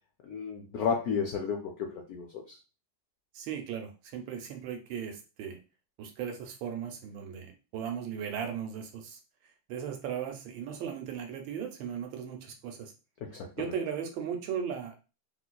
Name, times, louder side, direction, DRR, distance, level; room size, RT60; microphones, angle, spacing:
voice 1, 0.2-2.6 13.2-13.5, left 6 dB, 85° left, 2 dB, 0.8 m, -33 dB
voice 2, 3.3-5.6 6.0-9.2 9.7-12.9 13.6-14.9, right 8 dB, 80° right, 5 dB, 1.4 m, -37 dB
3.1 x 3.0 x 2.2 m, 0.32 s
omnidirectional pair, 2.2 m